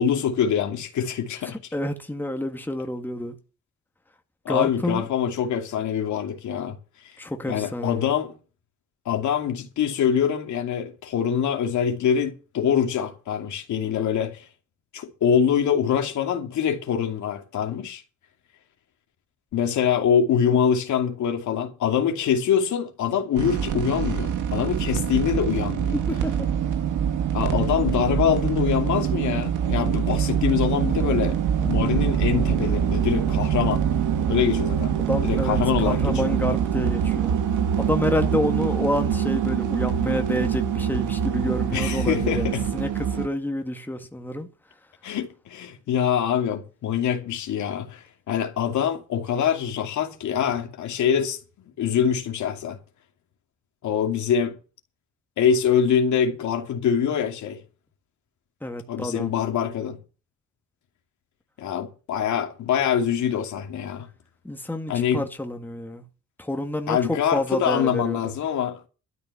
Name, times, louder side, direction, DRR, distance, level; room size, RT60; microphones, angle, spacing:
voice 1, 0.0-1.6 4.4-6.8 7.5-8.3 9.1-14.4 14.9-18.0 19.5-26.0 27.3-31.4 31.6-33.8 34.3-35.0 35.2-36.3 41.7-42.6 45.0-51.4 51.8-52.8 53.8-54.6 55.4-57.6 58.9-60.0 61.6-64.1 64.9-65.2 66.9-68.8, left 8 dB, 75° left, 2.7 m, -24 dB
voice 2, 1.4-3.3 4.5-5.1 7.2-8.2 26.1-26.5 35.0-37.3 37.8-44.5 58.6-59.3 64.4-66.0 66.4-68.3, left 1 dB, 5° left, 2.0 m, -28 dB
sound 1, 23.3-43.3, right 8 dB, 80° right, 2.4 m, -24 dB
12.5 x 10.5 x 5.9 m
cardioid pair, 90°, 30 cm